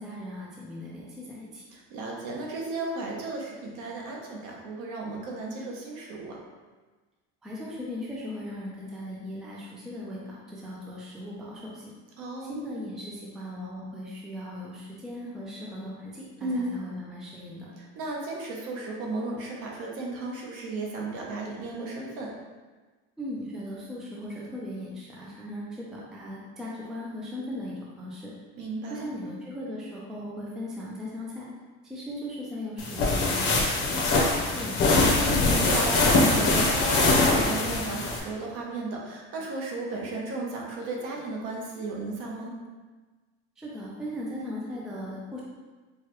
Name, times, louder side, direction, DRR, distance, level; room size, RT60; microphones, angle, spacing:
voice 1, 0.0-1.6 7.4-11.8 12.5-17.7 23.2-28.3 28.9-31.5 31.8-35.0 43.6-45.4, left 1 dB, ahead, -5 dB, 0.4 m, -38 dB
voice 2, 1.7-6.4 12.2-12.6 16.4-16.8 17.8-22.4 28.6-29.1 35.2-42.5, right 2 dB, 55° right, -1 dB, 0.8 m, -34 dB
sound 1, 32.8-38.2, left 3 dB, 40° left, 0.8 m, -23 dB
4.6 x 2.2 x 3.0 m, 1.3 s
cardioid pair, 155°, 29 cm